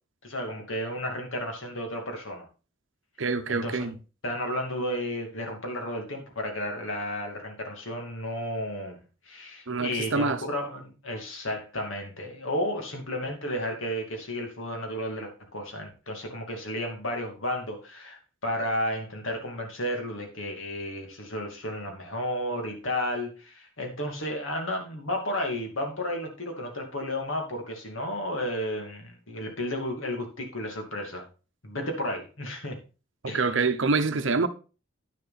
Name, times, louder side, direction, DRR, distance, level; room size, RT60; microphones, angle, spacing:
voice 1, 0.2-2.5 3.5-3.9 4.2-9.0 9.3-31.3 31.6-32.8 33.3-33.5, left 1 dB, 70° left, 2.4 m, -33 dB
voice 2, 3.2-4.0 9.7-10.4 33.2-34.5, right 4 dB, 60° right, 0.8 m, -26 dB
10.0 x 6.9 x 4.1 m
head